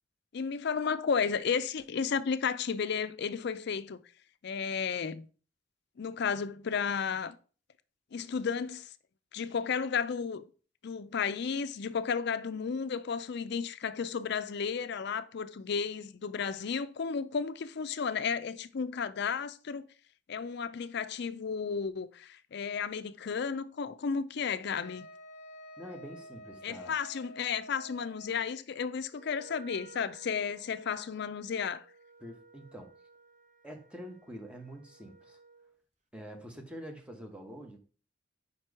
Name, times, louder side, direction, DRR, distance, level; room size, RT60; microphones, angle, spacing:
voice 1, 0.3-4.0 4.4-5.3 6.0-7.3 8.1-8.9 9.3-10.4 10.8-19.9 20.3-25.1 26.6-31.9, left 6 dB, 60° left, 0.4 m, -33 dB
Wind instrument woodwind instrument, 24.7-28.5, equal, 35° left, 0.9 m, -49 dB
voice 2, 25.8-27.0 32.2-32.9 33.6-35.4 36.1-37.8, equal, 5° right, 1.0 m, -46 dB
Wind instrument woodwind instrument 2, 29.1-35.8, right 4 dB, 40° right, 0.8 m, -56 dB
5.2 x 4.5 x 4.7 m
head